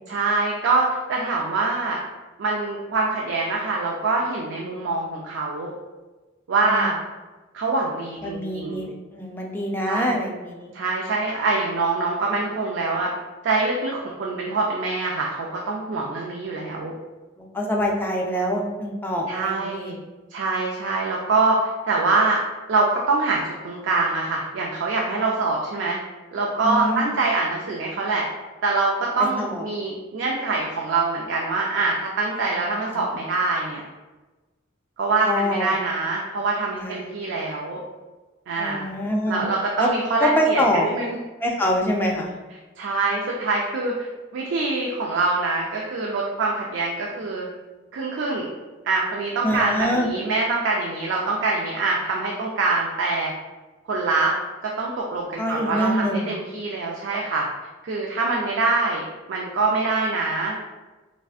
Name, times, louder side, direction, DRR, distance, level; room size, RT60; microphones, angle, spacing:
voice 1, 0.1-2.0 2.4-5.7 6.5-7.0 7.5-8.9 9.8-10.2 10.7-13.1 13.4-16.9 19.3-20.0 20.3-22.4 22.7-26.0 26.3-28.3 28.6-33.8 35.0-37.8 38.5-38.9 39.3-41.2 42.8-44.1 44.3-47.5 47.9-48.5 48.8-53.3 53.9-54.3 54.6-57.5 57.8-59.0 59.3-60.6, right 3 dB, 65° right, -2 dB, 0.4 m, -24 dB
voice 2, 8.2-10.7 17.4-19.9 26.6-27.1 29.4-29.6 32.5-33.1 35.2-35.7 36.7-37.1 38.6-39.4 39.8-39.9 40.2-40.9 41.4-42.3 49.4-50.1 55.4-56.3, equal, 10° left, -1 dB, 0.4 m, -25 dB
3.2 x 2.5 x 2.3 m, 1.2 s
head